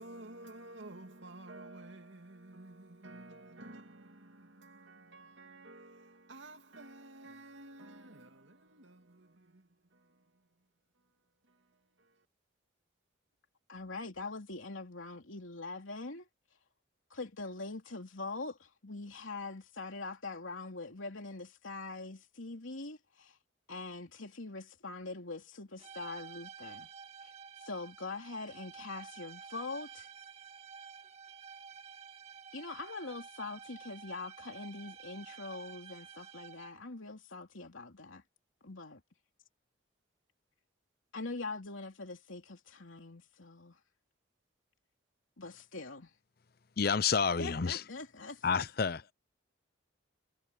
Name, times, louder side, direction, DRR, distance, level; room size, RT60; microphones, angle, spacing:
voice 1, 0.0-10.2, right 2 dB, 70° right, 2.3 m, -51 dB
voice 2, 13.7-16.3 17.1-23.4 23.7-26.9 27.2-27.3 27.6-30.1 32.5-38.2 38.6-39.0 41.1-43.8 45.4-46.1 47.4-48.5, left 3 dB, 85° left, 3.1 m, -43 dB
sound 1, 25.8-36.9, right 6 dB, 30° right, 2.0 m, -51 dB
voice 3, 46.8-47.8 48.4-49.0, left 5 dB, 50° left, 0.6 m, -29 dB
head